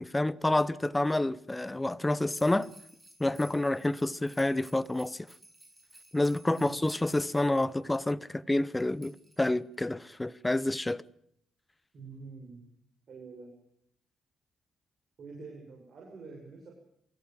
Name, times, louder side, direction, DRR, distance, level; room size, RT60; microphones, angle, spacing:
voice 1, 0.0-2.7 3.2-5.3 6.1-11.0, left 1 dB, 15° left, 0.9 m, -28 dB
sound 1, 2.3-7.8 8.5-9.7, right 1 dB, 10° right, 7.9 m, -57 dB
voice 2, 11.9-12.6 13.1-13.5 15.2-16.7, right 4 dB, 50° right, 7.0 m, -46 dB
23.5 x 17.0 x 7.6 m
cardioid pair, 90°, 0 cm